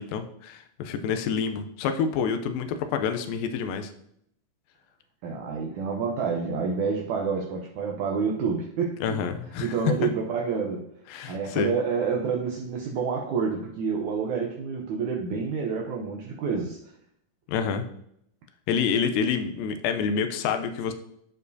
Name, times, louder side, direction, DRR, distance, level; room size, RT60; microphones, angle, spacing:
voice 1, 0.0-3.9 9.0-9.8 11.1-11.7 17.5-17.9 18.7-20.9, left 6 dB, 80° left, 7 dB, 2.2 m, -28 dB
voice 2, 5.2-9.2 9.6-10.9 11.3-16.8, right 5 dB, 85° right, 0 dB, 1.7 m, -28 dB
13.5 x 4.5 x 2.7 m, 0.73 s
omnidirectional pair, 4.3 m